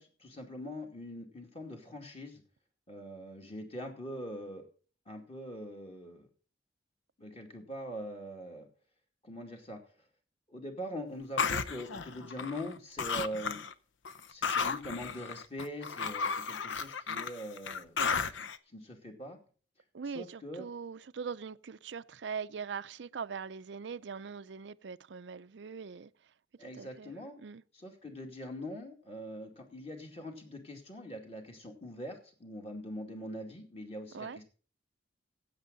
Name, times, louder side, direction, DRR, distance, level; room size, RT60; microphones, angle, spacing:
voice 1, 0.0-2.4 2.9-4.6 5.1-6.3 7.2-8.7 9.2-9.8 10.5-13.6 14.3-18.4 18.7-19.4 20.1-20.7 26.6-27.4 27.7-34.4, equal, 35° left, 2.3 m, -43 dB
sound 1, 11.4-12.7 13.0-13.7 14.0-18.6, left 5 dB, 85° left, 0.7 m, -34 dB
voice 2, 19.9-26.1 26.8-27.6 34.1-34.4, right 6 dB, 70° right, 0.5 m, -41 dB
15.5 x 8.4 x 4.0 m
head